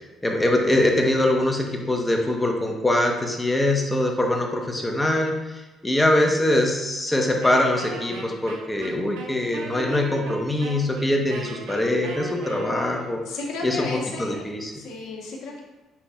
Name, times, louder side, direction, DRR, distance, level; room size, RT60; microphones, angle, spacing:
voice 1, 0.2-13.2 13.6-14.7, left 1 dB, 15° left, 2 dB, 1.2 m, -23 dB
Wind instrument woodwind instrument, 7.4-13.2, right 3 dB, 85° right, 1.2 m, -37 dB
voice 2, 13.2-14.5 14.8-15.6, left 3 dB, 70° left, -2 dB, 1.3 m, -33 dB
8.6 x 6.0 x 2.5 m, 1.1 s
supercardioid pair, 65°, 0 cm